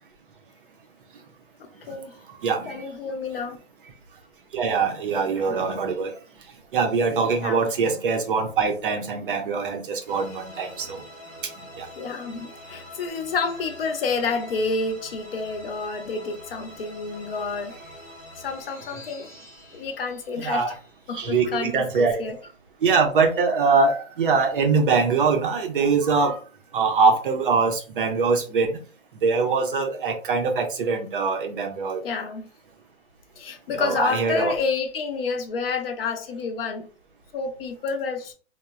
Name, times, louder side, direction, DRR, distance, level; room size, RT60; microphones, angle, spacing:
voice 1, 1.6-2.1 2.7-3.6 5.3-5.6 7.4-7.6 12.0-17.8 18.4-19.3 19.7-20.8 21.1-22.4 32.0-32.5 33.4-36.9 37.3-38.3, left 4 dB, 45° left, 0.6 m, -29 dB
voice 2, 2.3-2.8 4.5-6.1 6.7-11.0 11.7-11.9 20.4-20.7 21.1-22.2 22.8-26.4 26.7-28.8 29.1-32.0 33.7-34.5, right 4 dB, 45° right, 0.5 m, -23 dB
sound 1, 10.1-21.5, left 1 dB, 5° left, 0.8 m, -45 dB
3.0 x 2.0 x 2.3 m
hypercardioid pair, 155°, 39 cm